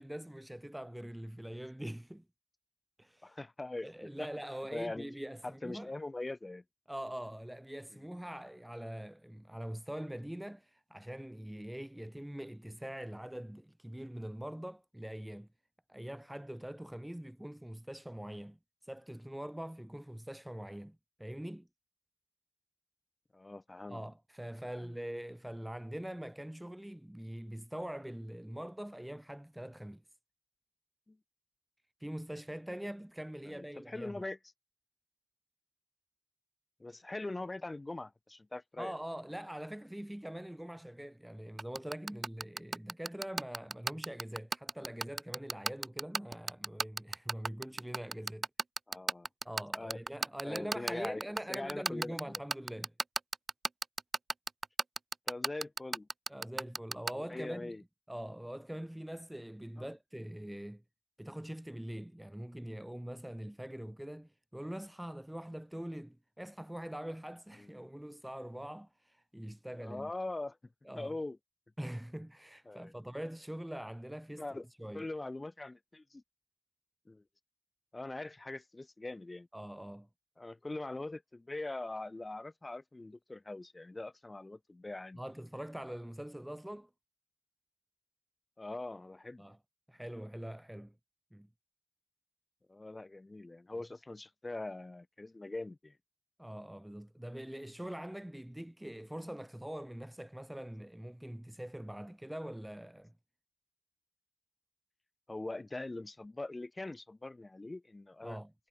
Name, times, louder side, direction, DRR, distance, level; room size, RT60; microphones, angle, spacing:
voice 1, 0.0-2.2 3.0-3.4 3.8-5.9 6.9-15.5 15.9-18.6 18.8-21.7 23.9-30.0 32.0-34.3 38.8-48.5 49.4-52.9 56.3-57.7 58.1-60.8 61.2-70.1 70.9-71.1 71.8-74.4 74.8-75.1 79.5-80.1 85.2-86.9 89.4-89.6 89.9-90.9 91.3-91.5 96.4-103.1 108.2-108.5, right 1 dB, 5° right, 0.7 m, -43 dB
voice 2, 3.2-4.3 4.7-5.1 5.4-6.6 7.9-8.1 23.3-24.0 24.7-24.9 31.1-31.2 33.4-34.4 36.8-38.9 48.9-49.3 49.7-50.0 50.4-51.2 51.5-52.4 55.3-56.1 57.1-57.8 59.8-59.9 67.5-67.7 69.8-70.6 70.9-71.4 72.7-72.9 74.4-74.6 74.9-76.2 77.1-77.2 77.9-79.5 80.4-85.2 88.6-89.4 92.7-96.0 105.3-108.4, left 2 dB, 20° left, 1.1 m, -42 dB
sound 1, 41.6-57.1, right 3 dB, 35° right, 0.4 m, -33 dB
cardioid pair, 80°, 0 cm